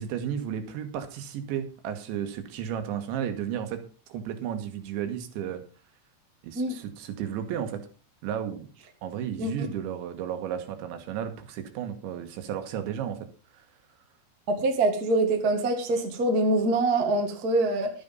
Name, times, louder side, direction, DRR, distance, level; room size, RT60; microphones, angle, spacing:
voice 1, 0.0-3.8 4.1-5.6 6.4-7.8 8.2-8.7 9.0-13.2 13.5-13.7, right 9 dB, 85° right, 8 dB, 3.7 m, -33 dB
voice 2, 14.5-17.9, right 2 dB, 35° right, 4 dB, 1.5 m, -24 dB
12.0 x 9.6 x 5.3 m, 0.36 s
omnidirectional pair, 5.2 m